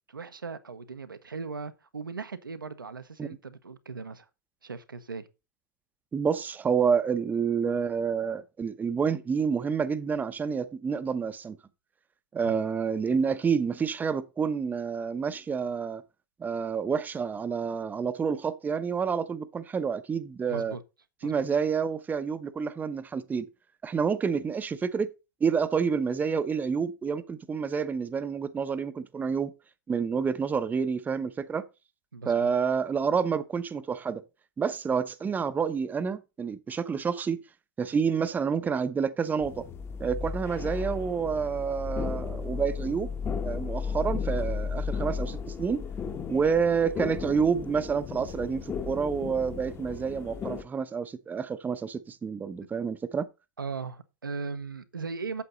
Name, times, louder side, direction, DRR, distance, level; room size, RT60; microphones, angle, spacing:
voice 1, 0.1-4.3 4.6-5.3 12.4-12.6 20.5-20.8 21.2-21.3 32.1-32.5 53.6-55.4, right 4 dB, 85° right, 1.1 m, -38 dB
voice 2, 6.1-11.6 12.3-16.0 16.4-20.8 21.2-23.5 23.8-25.1 25.4-29.5 29.9-31.6 32.3-34.2 34.6-37.4 37.8-39.6 40.0-43.1 43.4-45.9 46.3-53.2, right 6 dB, 15° right, 0.8 m, -28 dB
sound 1, 39.4-50.6, left 6 dB, 20° left, 1.2 m, -34 dB
8.4 x 7.9 x 4.0 m
figure-of-eight pair, 100°, 11 cm